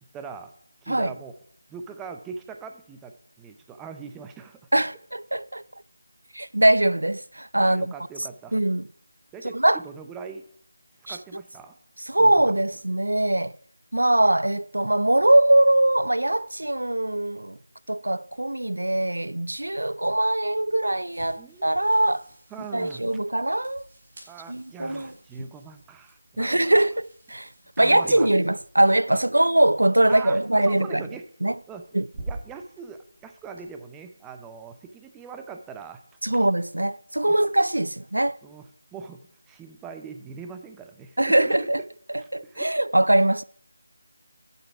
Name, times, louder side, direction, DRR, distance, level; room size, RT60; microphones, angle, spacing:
voice 1, 0.1-0.5 0.8-1.3 1.7-4.7 7.6-8.6 9.3-10.4 11.0-11.8 12.2-12.5 21.4-21.9 22.5-23.0 24.3-26.7 27.8-28.3 29.1-29.2 30.1-31.2 31.7-31.9 32.2-36.0 37.3-37.4 38.4-41.7 42.2-42.7, right 5 dB, 10° right, 0.6 m, -41 dB
voice 2, 4.7-5.6 6.3-7.9 8.5-8.9 9.4-9.8 11.1-11.2 12.1-13.6 13.9-17.6 17.9-22.3 22.7-23.9 24.5-25.1 25.4-25.5 26.4-27.5 27.8-31.0 31.4-31.6 31.9-32.1 36.2-38.4 41.2-41.8 42.1-43.4, right 1 dB, 85° right, 0.3 m, -22 dB
sound 1, 20.1-33.7, right 2 dB, 45° right, 4.7 m, -47 dB
12.0 x 6.7 x 4.7 m
figure-of-eight pair, 165°, 0 cm